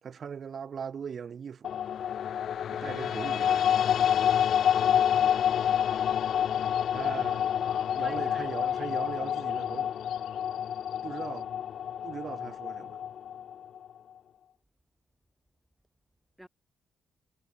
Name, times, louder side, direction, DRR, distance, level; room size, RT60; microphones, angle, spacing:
voice 1, 0.0-1.8 2.7-3.7 6.9-7.5 7.8-9.9 11.0-11.5 12.0-13.0, right 7 dB, 50° right, 2.2 m, -39 dB
sound 1, 1.6-13.9, left 9 dB, 60° left, 0.4 m, -28 dB
sound 2, 5.4-11.4, left 14 dB, 85° left, 4.7 m, -57 dB
voice 2, 6.9-8.7 16.4-16.5, right 1 dB, 5° right, 1.6 m, -50 dB
cardioid pair, 90°, 0 cm